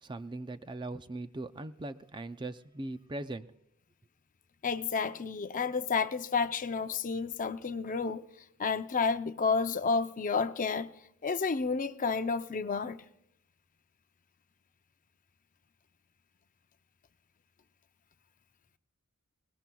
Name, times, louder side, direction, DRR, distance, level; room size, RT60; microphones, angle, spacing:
voice 1, 0.0-3.5, right 2 dB, 20° right, 0.5 m, -40 dB
voice 2, 4.6-8.2 8.6-10.9 11.2-13.0, left 5 dB, 35° left, 0.6 m, -30 dB
22.5 x 19.0 x 2.3 m
head